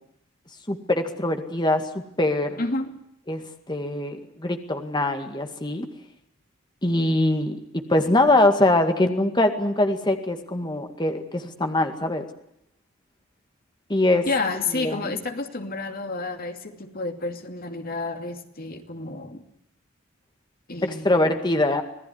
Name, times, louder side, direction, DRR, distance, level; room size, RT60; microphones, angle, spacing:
voice 1, 0.7-2.6 3.3-3.4 3.7-5.9 6.8-7.6 7.9-12.2 13.9-14.3 14.7-15.1 20.8-21.8, left 2 dB, 20° left, 6 dB, 2.0 m, -23 dB
voice 2, 2.6-2.9 14.3-19.4 20.7-21.3, left 3 dB, 45° left, 5 dB, 2.5 m, -30 dB
26.5 x 18.5 x 9.5 m, 0.76 s
head